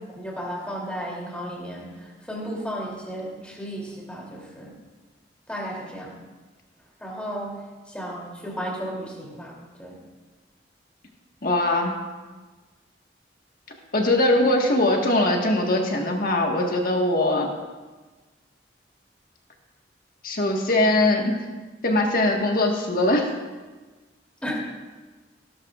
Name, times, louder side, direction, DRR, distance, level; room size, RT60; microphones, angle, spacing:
voice 1, 0.1-4.7 5.5-6.2 7.0-7.6 7.9-10.0 24.4-24.5, equal, 5° left, -4 dB, 3.1 m, -34 dB
voice 2, 11.4-11.9 13.9-17.5 20.2-21.4 21.8-23.3, left 1 dB, 50° left, 1 dB, 1.7 m, -21 dB
17.5 x 11.5 x 2.5 m, 1.3 s
head